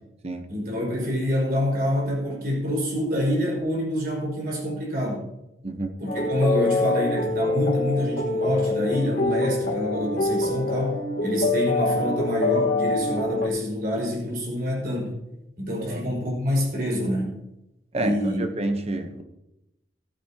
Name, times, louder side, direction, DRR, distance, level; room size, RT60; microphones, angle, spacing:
voice 1, 0.5-5.3 6.0-15.1 15.6-17.3 17.9-18.4, left 1 dB, 55° right, 5.4 m, -26 dB
sound 1, 6.1-13.5, left 2 dB, 85° left, 1.7 m, -25 dB
voice 2, 17.9-19.2, right 1 dB, 35° right, 1.1 m, -29 dB
16.0 x 12.0 x 2.9 m
head